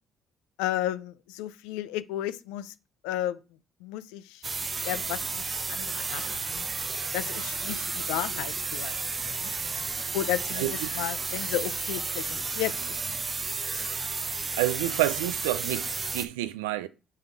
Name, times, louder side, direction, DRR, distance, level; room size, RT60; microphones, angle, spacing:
voice 1, 0.6-2.7 3.0-3.4 3.8-4.5 4.8-6.7 7.1-8.9 9.2-9.5 10.1-10.7 10.9-13.0, left 13 dB, 85° left, 0.4 m, -33 dB
sound 1, 4.4-16.2, right 4 dB, 35° right, 0.6 m, -32 dB
voice 2, 10.5-10.9 14.6-16.9, right 15 dB, 90° right, 0.4 m, -29 dB
5.5 x 3.8 x 4.5 m
hypercardioid pair, 60°, 0 cm